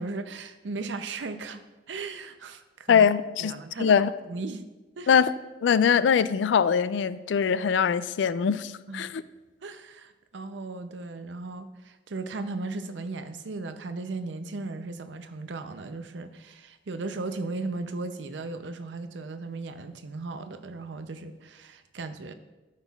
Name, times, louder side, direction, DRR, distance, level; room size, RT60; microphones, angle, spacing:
voice 1, 0.0-1.6 1.9-3.1 3.4-4.6 5.0-5.1 8.9-9.1 9.6-22.3, right 3 dB, 75° right, 0.6 m, -36 dB
voice 2, 2.9-3.5 3.8-4.1 5.1-5.3 5.6-9.2, left 7 dB, 75° left, 0.3 m, -22 dB
13.5 x 5.4 x 2.4 m
head